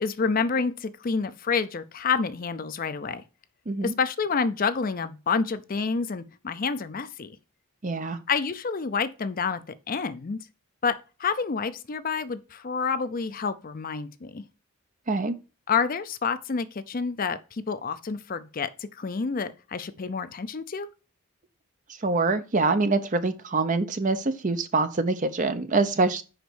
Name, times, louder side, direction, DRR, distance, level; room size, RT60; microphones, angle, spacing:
voice 1, 0.0-3.2 3.8-7.3 8.3-9.6 9.9-10.4 10.8-10.9 11.2-14.4 15.7-20.9, left 5 dB, 40° left, 0.5 m, -28 dB
voice 2, 7.8-8.2 15.1-15.3 22.0-26.2, right 3 dB, 35° right, 0.6 m, -25 dB
5.2 x 5.1 x 6.1 m
head